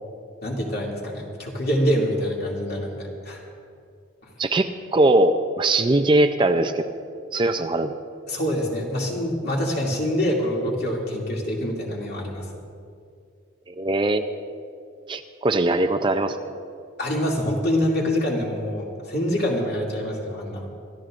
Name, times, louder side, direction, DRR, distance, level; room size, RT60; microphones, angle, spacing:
voice 1, 0.4-3.4 8.3-12.4 17.0-20.7, equal, 55° left, -3 dB, 2.6 m, -25 dB
voice 2, 4.4-7.0 7.3-7.9 13.7-14.2 15.1-16.6, right 2 dB, 25° right, 7 dB, 0.4 m, -21 dB
27.0 x 13.5 x 2.5 m, 2.4 s
head